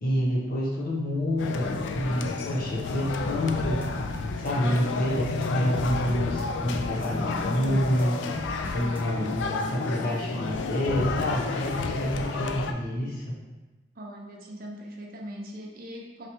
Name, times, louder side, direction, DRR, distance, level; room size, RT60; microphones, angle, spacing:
voice 1, 0.0-3.8 4.4-8.2 8.7-13.4, equal, 55° left, -3 dB, 0.9 m, -28 dB
sound 1, 1.4-12.7, left 4 dB, 90° left, 0.3 m, -31 dB
sound 2, 3.5-3.9 4.1-4.5 4.8-5.5 5.7-6.4 6.7-7.1 7.4-8.1 8.3-9.0 9.3-9.5, equal, 10° right, 0.4 m, -42 dB
voice 2, 13.9-16.3, equal, 55° right, -1 dB, 0.7 m, -40 dB
4.1 x 3.1 x 3.0 m, 1.2 s
head